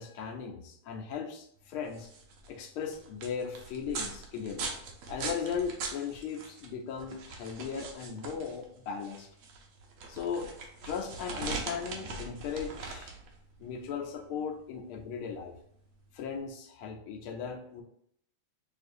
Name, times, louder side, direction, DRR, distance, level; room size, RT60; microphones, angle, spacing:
voice 1, 0.0-2.1 2.5-4.7 5.1-9.3 10.1-10.5 10.8-13.2 13.6-15.5 16.1-17.8, left 6 dB, 80° left, 2 dB, 1.4 m, -37 dB
sound 1, 1.8-16.3, right 4 dB, 75° right, 1.5 m, -42 dB
6.6 x 2.5 x 2.5 m, 0.70 s
omnidirectional pair, 2.3 m